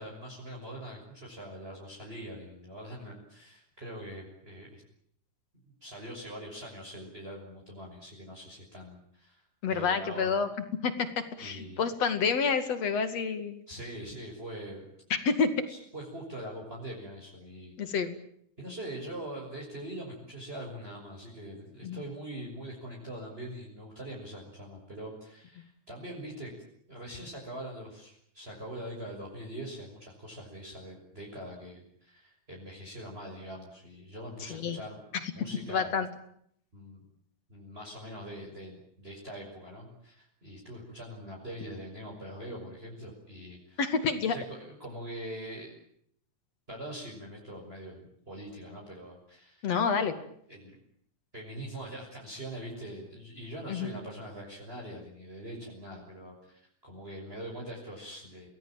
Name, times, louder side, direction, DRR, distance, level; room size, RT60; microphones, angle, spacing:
voice 1, 0.0-4.8 5.8-10.4 11.4-11.8 13.7-14.8 15.7-17.9 18.6-26.5 26.9-35.0 35.3-35.9 36.7-37.0 37.5-43.8 44.2-45.7 46.7-49.7 50.5-50.8 51.3-58.5, right 1 dB, 15° right, -1 dB, 6.5 m, -43 dB
voice 2, 9.6-10.5 10.8-10.9 11.4-13.5 15.1-15.7 17.8-18.2 21.8-22.0 34.4-34.8 35.2-35.3 35.7-36.1 43.8-44.4 49.6-50.2 53.7-53.9, left 5 dB, 55° left, 10 dB, 3.2 m, -28 dB
29.5 x 20.0 x 9.0 m, 0.69 s
omnidirectional pair, 3.6 m